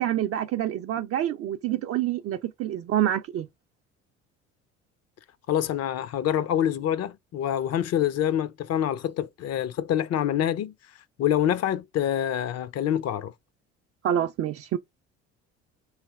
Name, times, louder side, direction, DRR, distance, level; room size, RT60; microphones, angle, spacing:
voice 1, 0.0-3.5 14.0-14.8, right 11 dB, 45° right, 0.5 m, -27 dB
voice 2, 5.5-10.7 11.2-13.3, left 10 dB, 50° left, 0.7 m, -26 dB
3.3 x 3.0 x 4.6 m
hypercardioid pair, 65°, 33 cm